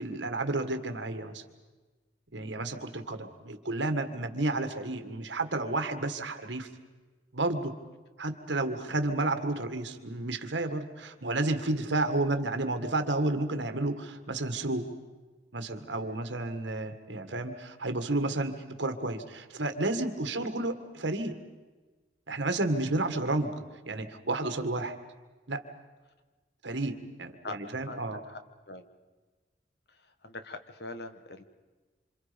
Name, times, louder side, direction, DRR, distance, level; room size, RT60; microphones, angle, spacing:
voice 1, 0.0-1.4 2.3-6.7 7.3-7.7 8.2-14.9 15.5-21.4 22.3-23.6 23.8-25.0 25.5-25.6 26.6-28.2, right 2 dB, 80° right, 8 dB, 1.9 m, -31 dB
voice 2, 27.8-28.4 28.7-28.9 29.9-31.4, left 2 dB, 60° left, 8 dB, 1.6 m, -43 dB
27.5 x 27.0 x 5.3 m, 1.3 s
head